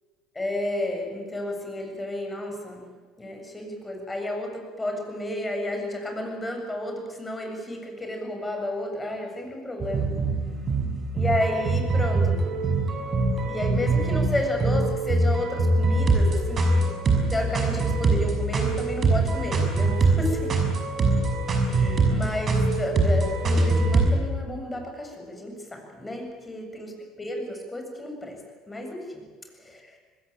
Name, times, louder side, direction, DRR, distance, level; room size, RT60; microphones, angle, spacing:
voice 1, 0.3-2.9 3.2-10.1 11.1-12.4 13.5-16.8 17.3-20.6 21.5-28.4 28.7-29.2 29.6-30.0, left 1 dB, 15° left, 3 dB, 7.9 m, -32 dB
sound 1, 9.8-24.1, right 3 dB, 35° right, 6.0 m, -23 dB
25.0 x 20.5 x 9.1 m, 1.4 s
figure-of-eight pair, 60°, 0 cm